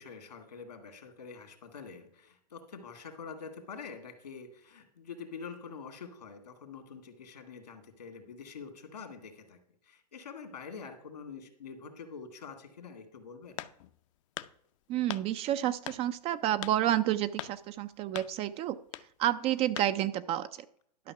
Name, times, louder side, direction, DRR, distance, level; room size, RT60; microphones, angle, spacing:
voice 1, 0.0-9.6 9.8-13.6, left 5 dB, 80° left, 5 dB, 2.2 m, -46 dB
sound 1, 13.6-14.0 14.4-14.5 15.1-15.3 15.9-16.0 16.6-16.8 17.4-17.6 18.2-18.3 18.9-19.1 19.8-19.9, left 14 dB, 50° left, 0.6 m, -40 dB
voice 2, 14.9-18.8 19.2-20.5, right 12 dB, 30° right, 12 dB, 0.4 m, -29 dB
12.0 x 5.8 x 5.8 m, 0.68 s
hypercardioid pair, 110°, 21 cm